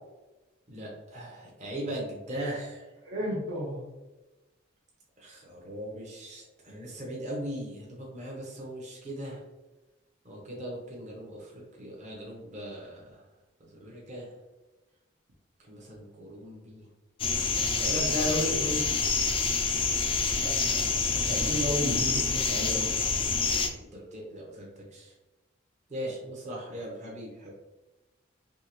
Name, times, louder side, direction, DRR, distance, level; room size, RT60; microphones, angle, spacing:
voice 1, 0.7-2.9 5.2-9.4 10.2-13.2 13.8-14.3 15.7-16.9 17.8-18.9 23.9-25.1 25.9-27.5, equal, 35° right, -3 dB, 0.8 m, -37 dB
voice 2, 3.0-3.8 20.4-20.9 21.1-22.9, equal, 65° right, -7 dB, 0.8 m, -33 dB
sound 1, 17.2-23.7, left 4 dB, 25° left, 0.3 m, -27 dB
3.6 x 2.8 x 2.9 m, 1.1 s
head